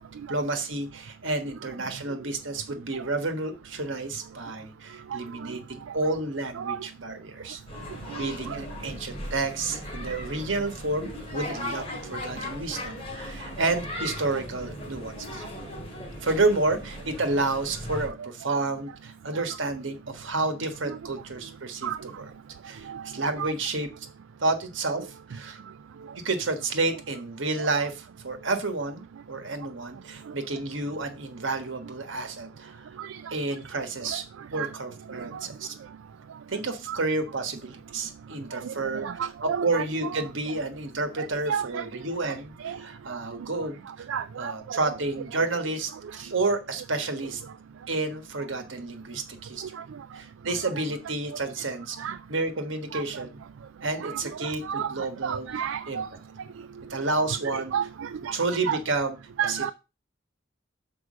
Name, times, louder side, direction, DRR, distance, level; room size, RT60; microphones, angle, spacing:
voice 1, 0.3-11.8 12.1-15.4 16.2-22.2 22.6-23.9 24.4-25.6 26.2-29.0 29.3-32.9 33.3-34.2 34.5-35.7 36.5-44.1 44.4-47.4 47.9-49.7 50.1-52.0 52.3-53.4 53.8-55.5 55.9-56.0 56.9-57.7 58.3-59.1 59.5-59.7, right 3 dB, 70° right, 1.4 m, -30 dB
voice 2, 5.1-5.5 6.5-6.8 8.1-8.6 18.2-18.3 19.3-19.4 20.9-21.0 21.8-22.0 22.9-23.1 23.4-23.5 25.0-25.1 27.6-27.7 33.0-33.2 34.1-34.2 34.5-34.7 35.2-35.4 36.9-37.0 38.5-38.7 39.0-40.2 41.2-41.9 42.2-42.3 42.6-42.8 43.1-43.2 44.1-44.9 49.7-49.8 51.3-51.4 52.0-52.2 52.9-53.0 53.9-56.1 57.1-57.2 57.4-58.8 59.4-59.7, right 8 dB, 90° right, 0.4 m, -33 dB
sound 1, 7.7-18.1, left 1 dB, 30° left, 2.5 m, -38 dB
6.2 x 4.7 x 6.2 m
head